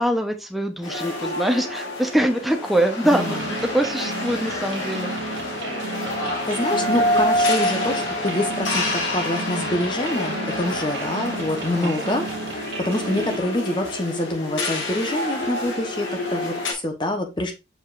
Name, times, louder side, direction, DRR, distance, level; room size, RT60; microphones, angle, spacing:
voice 1, 0.0-5.1 11.7-12.0, right 1 dB, ahead, 4 dB, 0.9 m, -23 dB
sound 1, 0.8-16.7, left 1 dB, 75° left, 1.9 m, -27 dB
voice 2, 3.1-3.4 6.5-17.5, left 1 dB, 25° left, 4 dB, 1.1 m, -26 dB
sound 2, 3.1-13.4, right 3 dB, 65° right, 1.0 m, -34 dB
6.9 x 5.3 x 2.6 m, 0.26 s
head